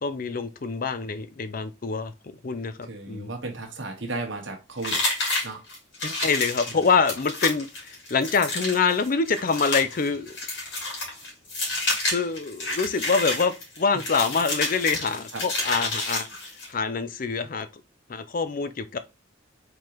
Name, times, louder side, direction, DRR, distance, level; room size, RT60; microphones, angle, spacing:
voice 1, 0.0-2.1 2.4-3.3 6.0-10.4 12.1-16.3 16.7-17.7 18.1-19.0, left 5 dB, 45° left, 0.5 m, -25 dB
voice 2, 2.8-5.0 5.4-5.6 6.7-6.8 13.9-14.0 15.3-15.4, right 3 dB, 65° right, 1.3 m, -34 dB
sound 1, 4.8-16.7, left 2 dB, 60° left, 2.5 m, -29 dB
4.6 x 3.8 x 3.0 m
head